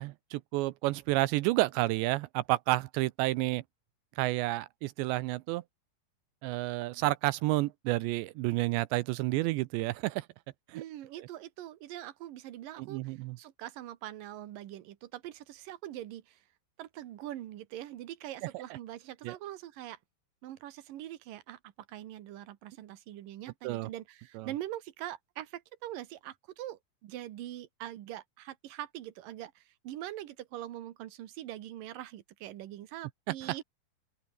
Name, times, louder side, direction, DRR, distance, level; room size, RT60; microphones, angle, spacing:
voice 1, 0.0-3.6 4.2-5.6 6.4-10.3 10.7-10.8 12.8-13.4 19.2-19.4 23.6-23.9 24.4-24.5 33.3-33.6, right 19 dB, 80° right, 2.8 m, -30 dB
voice 2, 10.7-16.4 16.8-20.0 20.4-33.6, right 13 dB, 65° right, 2.4 m, -43 dB
open air
omnidirectional pair, 5.4 m